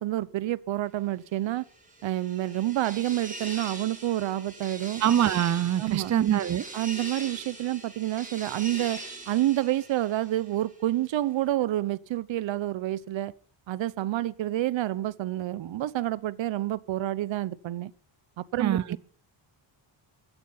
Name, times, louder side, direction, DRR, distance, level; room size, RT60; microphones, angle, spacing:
voice 1, 0.0-1.6 2.0-5.0 5.8-6.1 6.7-9.0 9.3-13.3 13.7-17.9 18.4-19.0, right 14 dB, 75° right, 1.0 m, -28 dB
sound 1, 1.6-10.7, right 2 dB, 15° right, 5.6 m, -42 dB
voice 2, 5.0-6.6 18.6-19.0, right 11 dB, 40° right, 0.7 m, -24 dB
16.0 x 14.5 x 5.8 m
cardioid pair, 155°, 46 cm